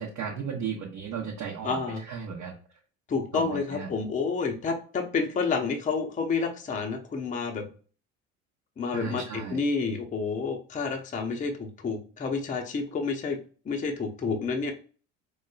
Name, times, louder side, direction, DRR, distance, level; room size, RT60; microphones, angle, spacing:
voice 1, 0.0-2.6 3.3-3.9 8.9-9.6, right 6 dB, 45° right, -2 dB, 0.9 m, -35 dB
voice 2, 1.6-2.0 3.1-7.7 8.8-13.4 13.7-14.7, left 4 dB, 20° left, 2 dB, 0.7 m, -29 dB
4.6 x 2.1 x 2.4 m, 0.39 s
figure-of-eight pair, 60°, 39 cm